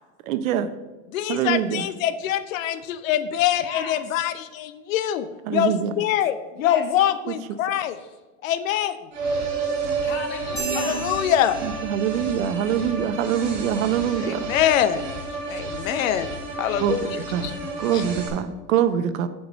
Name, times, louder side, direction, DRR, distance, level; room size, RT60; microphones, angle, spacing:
voice 1, 0.3-0.7 1.3-1.8 5.5-5.9 11.6-14.5 16.8-17.5 17.8-19.3, right 9 dB, 85° right, 12 dB, 0.8 m, -24 dB
voice 2, 1.1-8.0 8.4-9.0 10.8-11.6 14.2-15.0 15.5-16.3 16.6-17.5 17.9-18.0, left 11 dB, 80° left, 13 dB, 0.8 m, -24 dB
voice 3, 3.6-4.3 6.5-7.2 7.9-8.2 10.0-11.1 14.9-15.5 15.8-16.0, left 4 dB, 30° left, 3 dB, 1.4 m, -37 dB
sound 1, 9.1-18.3, right 3 dB, 50° right, 3.3 m, -30 dB
sound 2, 10.6-12.4, right 5 dB, 10° left, 2.0 m, -34 dB
8.2 x 4.8 x 6.3 m, 1.1 s
supercardioid pair, 175°, 39 cm